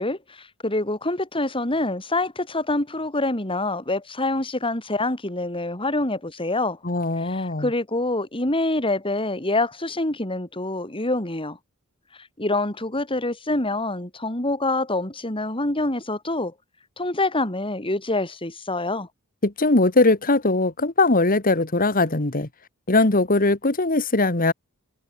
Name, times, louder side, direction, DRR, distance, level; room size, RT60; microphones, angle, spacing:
voice 1, 0.0-6.8 7.2-11.6 12.2-16.5 17.0-19.1, left 2 dB, 25° left, 4.1 m, -26 dB
voice 2, 6.8-7.7 19.4-22.5 22.9-24.5, left 2 dB, 40° left, 1.9 m, -20 dB
head